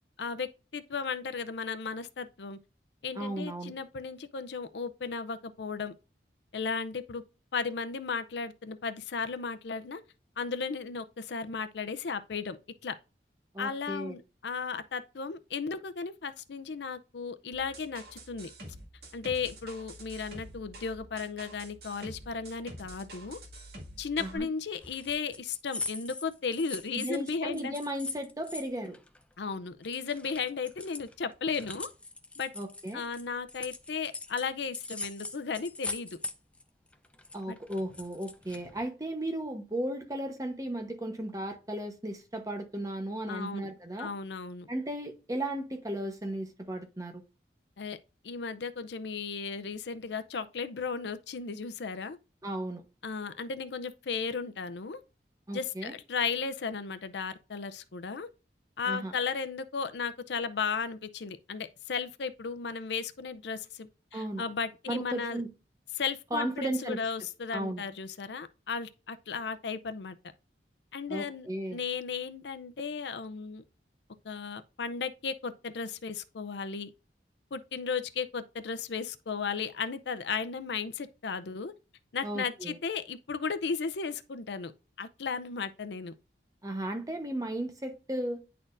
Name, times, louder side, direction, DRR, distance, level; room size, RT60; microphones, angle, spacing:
voice 1, 0.2-2.6 3.0-5.9 6.5-7.2 7.5-10.0 10.4-12.6 12.8-12.9 13.6-18.5 19.1-23.4 24.0-27.7 29.4-31.9 32.4-32.5 32.9-36.2 37.5-37.6 43.3-43.7 44.0-44.7 47.8-48.0 48.2-52.2 53.0-55.0 55.5-58.3 58.8-65.4 65.9-70.2 70.9-73.6 74.2-76.9 77.5-81.7 82.1-84.7 85.0-86.1, left 5 dB, 75° left, 0.5 m, -35 dB
voice 2, 3.1-3.7 13.5-14.2 24.2-24.5 26.9-29.0 32.5-33.0 37.3-44.1 44.7-47.2 52.4-52.8 55.5-55.9 58.9-59.1 64.1-64.4 64.9-65.5 66.3-67.0 67.5-67.8 71.1-71.8 82.2-82.8 86.6-88.4, right 1 dB, 20° right, 1.0 m, -35 dB
sound 1, 17.5-24.4, right 1 dB, 60° right, 2.0 m, -48 dB
sound 2, 24.8-29.6 29.8-34.5 34.7-36.6 36.9-38.8, left 3 dB, 5° left, 0.5 m, -41 dB
10.0 x 4.3 x 2.5 m
head